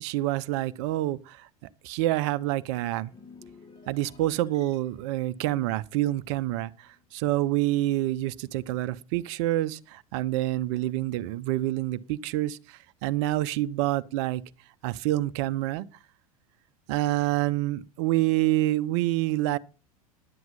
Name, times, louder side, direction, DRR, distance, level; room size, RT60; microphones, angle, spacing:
voice 1, 0.0-1.5 1.8-3.1 3.9-14.4 14.8-15.8 16.9-19.6, right 15 dB, 50° right, 0.7 m, -27 dB
sound 1, 2.6-7.2 7.5-7.8, left 5 dB, 25° left, 2.1 m, -55 dB
11.0 x 7.7 x 5.4 m
figure-of-eight pair, 85°, 19 cm